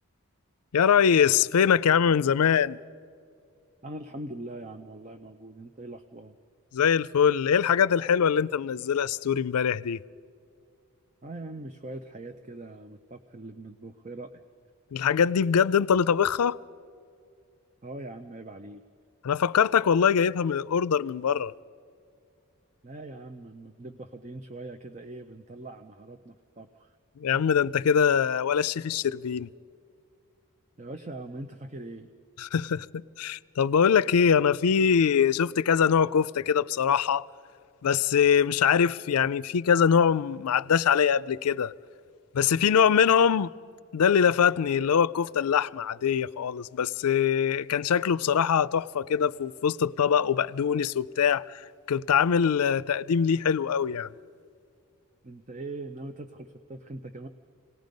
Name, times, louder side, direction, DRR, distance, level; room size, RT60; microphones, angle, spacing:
voice 1, 0.7-2.8 6.7-10.0 14.9-16.6 19.2-21.5 27.2-29.5 32.4-37.3 37.8-41.7 42.3-43.5 43.9-54.1, left 7 dB, 85° left, 0.4 m, -23 dB
voice 2, 3.8-6.3 11.2-14.4 17.8-18.8 22.8-27.0 30.8-32.1 55.2-57.3, right 2 dB, 30° right, 0.6 m, -41 dB
27.5 x 19.0 x 5.3 m
head